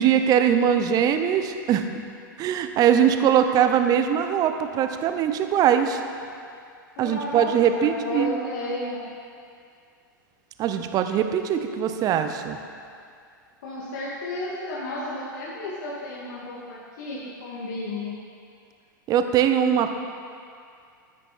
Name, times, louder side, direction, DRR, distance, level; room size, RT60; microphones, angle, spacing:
voice 1, 0.0-1.8 2.4-6.0 7.0-8.3 10.6-12.6 19.1-20.0, right 9 dB, 35° right, 8 dB, 0.9 m, -21 dB
voice 2, 7.0-7.5 7.8-9.0 11.5-12.2 13.6-18.1, left 2 dB, 60° left, -7 dB, 2.4 m, -33 dB
13.5 x 9.8 x 4.4 m, 2.3 s
hypercardioid pair, 100°, 11 cm